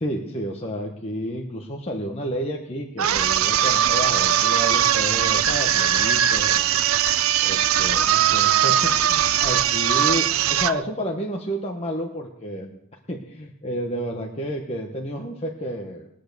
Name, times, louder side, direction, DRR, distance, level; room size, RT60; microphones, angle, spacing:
voice 1, 0.0-7.0 7.4-12.8 13.1-16.1, equal, 30° left, 0 dB, 1.1 m, -31 dB
sound 1, 3.0-10.8, right 10 dB, 75° right, 0.5 m, -20 dB
21.0 x 8.3 x 6.7 m, 0.79 s
head